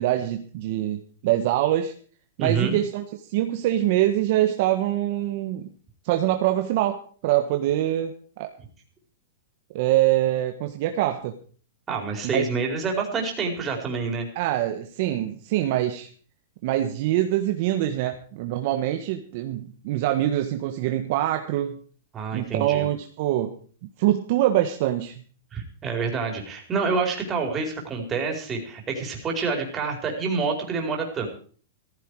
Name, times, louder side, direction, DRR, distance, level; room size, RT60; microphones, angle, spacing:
voice 1, 0.0-1.9 2.4-3.0 3.3-5.7 6.0-8.5 9.7-11.4 12.3-12.4 14.3-16.1 16.6-21.8 22.3-23.5 24.0-25.2, right 13 dB, 50° right, 5 dB, 1.5 m, -24 dB
voice 2, 2.4-2.8 11.9-14.3 22.1-22.9 25.5-31.3, right 4 dB, 20° right, 2 dB, 4.5 m, -27 dB
15.0 x 15.0 x 4.9 m, 0.44 s
hypercardioid pair, 145°, 0 cm